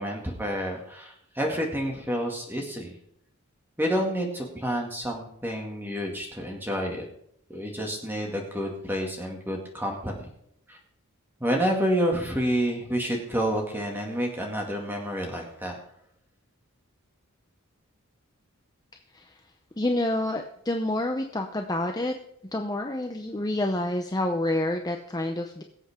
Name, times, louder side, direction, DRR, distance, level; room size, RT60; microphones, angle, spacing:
voice 1, 0.0-2.9 3.8-7.1 7.5-10.3 10.7-10.8 11.4-15.8, equal, 10° right, 0 dB, 2.2 m, -29 dB
voice 2, 19.8-22.1 22.5-25.6, left 1 dB, 15° left, 4 dB, 0.6 m, -28 dB
22.5 x 7.7 x 3.7 m, 0.71 s
head